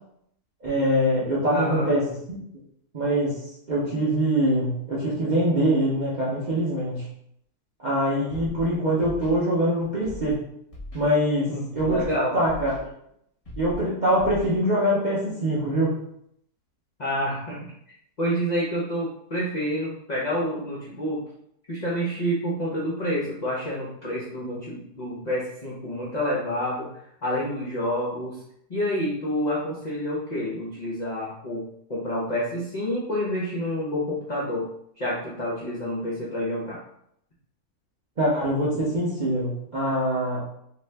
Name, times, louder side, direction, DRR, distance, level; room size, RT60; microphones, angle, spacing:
voice 1, 0.6-2.0 2.3-2.4 2.9-3.4 3.7-7.1 7.8-10.4 10.9-12.8 13.6-15.9 38.2-40.4, right 1 dB, 50° right, -8 dB, 0.5 m, -24 dB
voice 2, 1.5-1.9 11.5-12.4 17.0-17.7 18.2-21.2 21.7-26.9 27.2-28.4 28.7-31.6 31.9-34.7 35.0-36.8, equal, 60° left, -6 dB, 0.4 m, -28 dB
Scratching (performance technique), 8.3-8.6 9.0-9.3 10.0-10.3 10.7-11.0 11.8-12.1 12.4-12.8 13.5-13.8 14.2-14.5, left 1 dB, 25° left, 0.9 m, -38 dB
2.6 x 2.4 x 3.2 m, 0.73 s
omnidirectional pair, 1.7 m